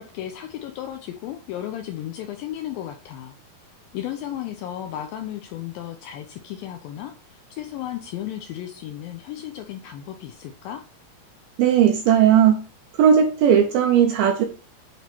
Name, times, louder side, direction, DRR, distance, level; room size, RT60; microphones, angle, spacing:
voice 1, 0.0-3.4 3.9-10.8, left 11 dB, 90° left, 5 dB, 2.0 m, -34 dB
voice 2, 11.6-12.6 13.0-14.4, right 8 dB, 80° right, 5 dB, 2.2 m, -17 dB
8.2 x 3.0 x 4.4 m, 0.37 s
omnidirectional pair, 4.8 m